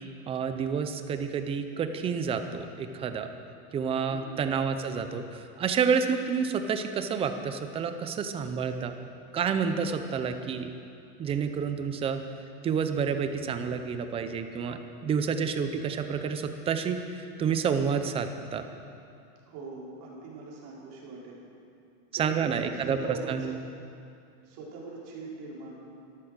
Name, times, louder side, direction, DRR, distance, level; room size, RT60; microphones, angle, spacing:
voice 1, 0.3-3.3 3.7-9.0 9.3-10.7 11.2-12.2 12.6-18.6 22.1-23.5, right 6 dB, 15° right, 8 dB, 0.4 m, -29 dB
voice 2, 4.1-4.4 19.5-21.4 22.1-23.5 24.4-25.7, right 3 dB, 45° right, -4 dB, 4.4 m, -42 dB
13.0 x 13.0 x 6.5 m, 2.5 s
supercardioid pair, 150°, 44 cm